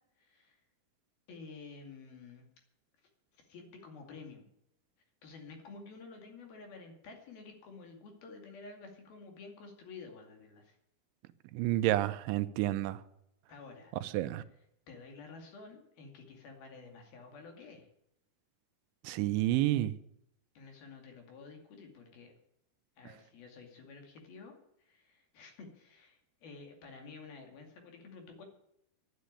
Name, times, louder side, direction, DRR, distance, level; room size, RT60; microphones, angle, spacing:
voice 1, 0.2-0.6 1.3-2.4 3.3-4.5 5.2-10.8 13.5-14.3 14.9-17.9 20.6-22.3 23.0-24.5 24.8-28.4, left 4 dB, 60° left, 3 dB, 4.0 m, -51 dB
voice 2, 11.5-13.0 14.1-14.4 19.0-19.9, right 15 dB, 85° right, 12 dB, 3.1 m, -29 dB
11.5 x 10.5 x 9.8 m, 0.77 s
omnidirectional pair, 5.3 m